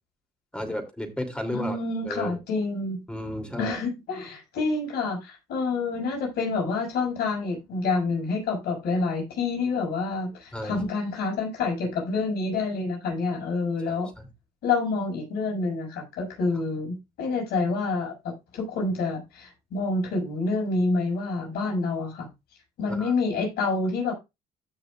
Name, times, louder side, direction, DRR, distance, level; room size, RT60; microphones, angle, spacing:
voice 1, 0.5-1.8 2.0-2.4 3.1-3.7 10.5-10.8 13.9-14.3 22.9-23.1, equal, 5° left, 2.9 m, -33 dB
voice 2, 1.5-3.0 3.6-14.1 14.6-18.1 18.5-22.3 22.8-24.1, left 3 dB, 75° left, 6.0 m, -28 dB
15.5 x 6.2 x 2.4 m
cardioid pair, 110°, 17 cm